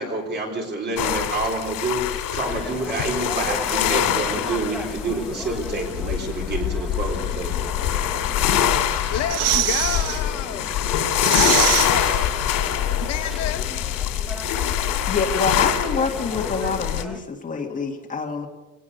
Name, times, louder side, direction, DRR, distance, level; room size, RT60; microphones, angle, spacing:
voice 1, 0.0-7.7, right 2 dB, 30° right, 3.8 m, -28 dB
sound 1, 1.0-17.0, left 10 dB, 90° left, 2.5 m, -24 dB
sound 2, 2.5-17.2, equal, ahead, 1.1 m, -37 dB
sound 3, 8.9-10.2 10.6-10.7 11.0-12.8 13.0-13.1, right 11 dB, 75° right, 1.5 m, -24 dB
voice 2, 9.1-10.9 11.3-12.4 13.0-13.7, left 10 dB, 55° left, 1.0 m, -30 dB
voice 3, 15.1-18.5, left 5 dB, 25° left, 2.1 m, -26 dB
24.0 x 18.5 x 6.8 m
cardioid pair, 175°, 32 cm